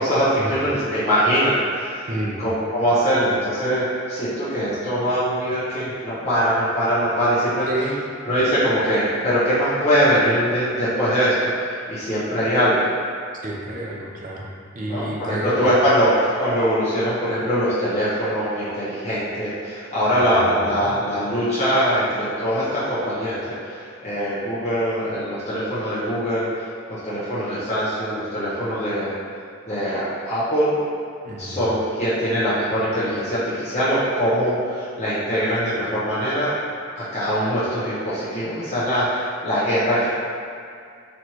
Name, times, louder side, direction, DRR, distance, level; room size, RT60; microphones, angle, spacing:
voice 1, 0.0-2.1 2.4-7.7 8.2-12.9 14.9-26.5 26.9-29.1 29.7-30.8 31.4-36.5 37.0-40.1, equal, 35° left, -12 dB, 0.7 m, -22 dB
voice 2, 2.1-2.4 7.7-8.1 13.4-15.7 20.1-20.9 31.2-31.7, right 1 dB, 40° right, -2 dB, 0.5 m, -30 dB
4.1 x 3.0 x 2.9 m, 2.3 s
head